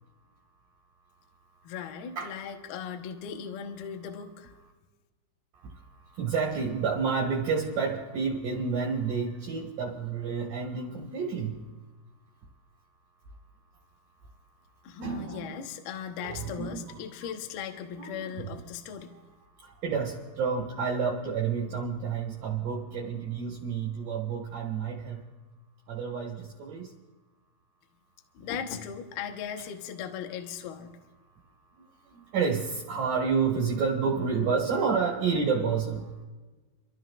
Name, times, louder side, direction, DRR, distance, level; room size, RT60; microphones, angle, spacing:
voice 1, 1.6-4.5 14.8-19.2 28.3-30.9, left 7 dB, 70° left, 4 dB, 2.7 m, -38 dB
voice 2, 6.2-11.7 15.0-15.5 16.2-16.8 18.0-18.1 19.6-25.2 25.9-26.9 32.3-36.1, right 5 dB, 60° right, -2 dB, 2.9 m, -29 dB
29.5 x 13.0 x 2.5 m, 1.2 s
omnidirectional pair, 5.3 m